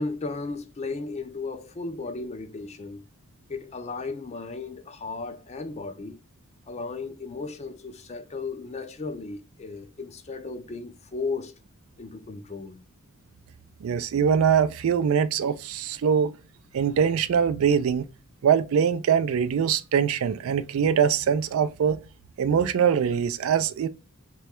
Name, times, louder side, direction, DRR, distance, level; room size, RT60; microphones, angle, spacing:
voice 1, 0.0-3.0 3.5-6.2 6.7-11.5 12.0-12.8, left 3 dB, 30° left, 0.4 m, -35 dB
voice 2, 13.8-16.3 16.7-18.1 18.4-22.0 22.4-23.9, right 7 dB, 70° right, 0.3 m, -23 dB
3.1 x 2.3 x 4.2 m
head